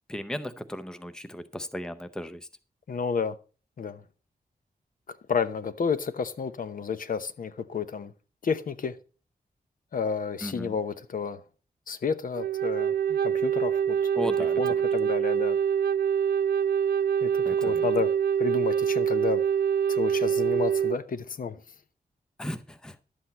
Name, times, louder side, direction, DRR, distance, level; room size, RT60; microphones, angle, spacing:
voice 1, 0.1-2.5 10.4-10.8 14.2-14.8 17.4-17.9 22.4-23.0, equal, 5° left, 0.6 m, -36 dB
voice 2, 2.9-3.3 3.8-4.0 5.1-8.1 8.4-8.9 9.9-11.4 11.9-12.9 13.2-14.1 14.6-15.6 17.2-18.1 18.4-19.4 19.9-21.6, left 6 dB, 60° left, 0.8 m, -31 dB
Wind instrument woodwind instrument, 12.4-21.0, right 8 dB, 85° right, 0.4 m, -25 dB
12.0 x 8.0 x 4.1 m
wide cardioid pair, 180°, 16 cm